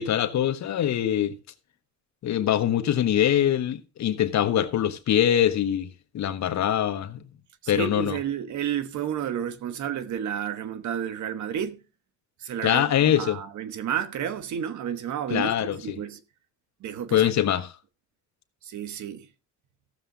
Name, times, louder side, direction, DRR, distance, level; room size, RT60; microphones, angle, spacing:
voice 1, 0.0-1.3 2.2-5.9 6.1-7.3 7.7-8.2 12.6-13.4 15.3-16.0 17.1-17.7, left 10 dB, 65° left, 1.2 m, -23 dB
voice 2, 7.6-11.8 12.4-12.8 13.1-16.2 16.8-17.3 18.6-19.3, right 9 dB, 70° right, 1.2 m, -31 dB
15.0 x 7.2 x 3.8 m
cardioid pair, 90°, 30 cm